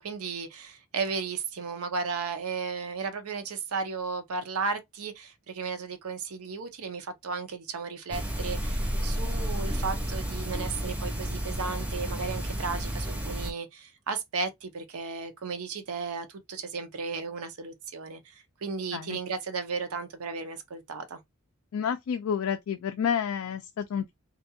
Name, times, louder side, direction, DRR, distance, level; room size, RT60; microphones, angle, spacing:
voice 1, 0.0-18.3 18.6-21.2, right 4 dB, 75° right, 0.6 m, -34 dB
sound 1, 8.1-13.5, equal, 5° right, 0.5 m, -31 dB
voice 2, 21.7-24.1, left 7 dB, 65° left, 0.3 m, -30 dB
2.5 x 2.2 x 2.6 m
head